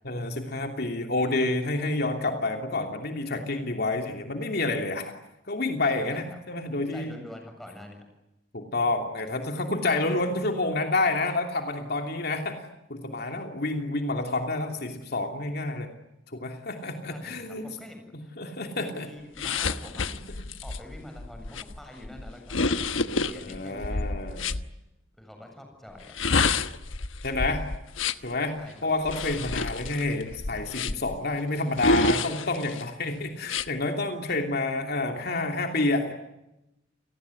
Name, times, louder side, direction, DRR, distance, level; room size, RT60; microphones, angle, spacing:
voice 1, 0.0-5.1 5.5-7.1 8.5-12.6 12.9-15.9 16.3-17.7 18.4-19.1 23.4-24.4 27.2-27.6 28.2-28.5 28.8-36.1, left 2 dB, 55° left, 4 dB, 3.0 m, -29 dB
voice 2, 6.9-8.1 9.7-10.4 17.1-18.4 18.7-20.1 20.6-22.7 23.2-24.4 25.2-26.3 28.5-28.9, left 1 dB, ahead, 3 dB, 7.7 m, -45 dB
sound 1, 19.4-24.6 26.0-28.3 29.0-31.2 31.8-32.8 33.4-33.7, left 3 dB, 85° left, 1.2 m, -28 dB
30.0 x 20.0 x 9.7 m, 0.90 s
head